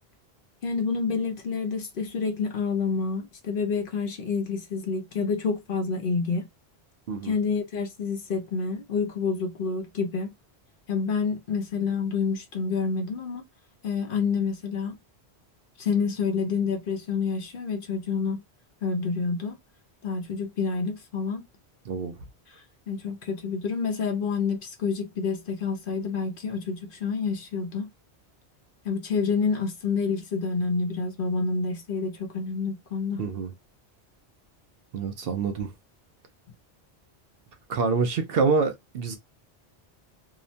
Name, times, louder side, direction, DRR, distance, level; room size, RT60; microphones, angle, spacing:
voice 1, 0.6-6.5 7.2-10.3 10.9-13.4 13.8-15.0 15.8-18.4 18.8-19.6 20.0-21.4 22.9-27.9 28.8-33.2, left 5 dB, 60° left, 0.8 m, -28 dB
voice 2, 21.9-22.2 33.2-33.5 34.9-35.7 37.7-39.2, right 4 dB, 65° right, 0.8 m, -26 dB
2.8 x 2.1 x 2.5 m
omnidirectional pair, 1.1 m